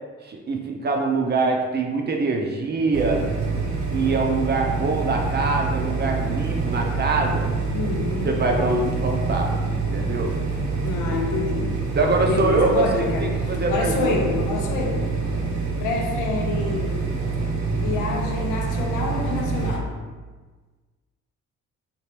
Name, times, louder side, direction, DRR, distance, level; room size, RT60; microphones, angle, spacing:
voice 1, 0.2-3.3 3.9-7.4 8.2-10.3 12.0-14.2, right 3 dB, 35° right, 0.5 m, -24 dB
sound 1, 2.9-19.8, right 4 dB, 65° right, 0.8 m, -26 dB
voice 2, 7.7-8.3 10.8-11.8 12.2-15.1 15.8-17.1 17.8-20.0, left 4 dB, 85° left, 0.6 m, -28 dB
2.9 x 2.5 x 3.2 m
cardioid pair, 90°, 30 cm